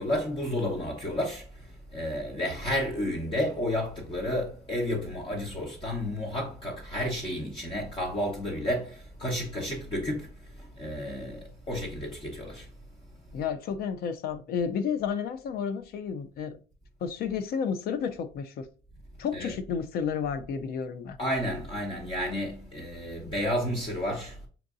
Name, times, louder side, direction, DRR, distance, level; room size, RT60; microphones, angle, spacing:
voice 1, 0.0-12.7 19.3-19.6 21.2-24.4, left 1 dB, 30° left, 1.1 m, -31 dB
voice 2, 13.3-16.6 17.0-18.7 19.2-21.2, left 7 dB, 65° left, 0.5 m, -31 dB
5.7 x 2.6 x 2.5 m
cardioid pair, 110°, 17 cm